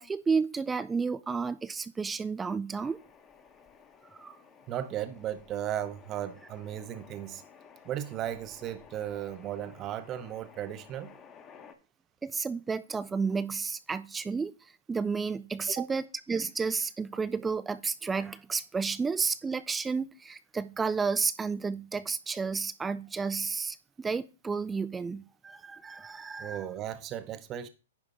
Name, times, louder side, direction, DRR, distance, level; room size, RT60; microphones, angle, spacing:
voice 1, 0.0-3.0 4.2-4.4 12.2-14.5 14.9-26.6, right 5 dB, 10° right, 0.3 m, -31 dB
sound 1, 2.8-11.7, left 6 dB, 20° left, 1.0 m, -55 dB
voice 2, 4.7-7.4 7.8-11.1 15.7-15.9 26.4-27.7, right 11 dB, 25° right, 0.8 m, -36 dB
10.0 x 3.6 x 5.5 m
hypercardioid pair, 140°, 0 cm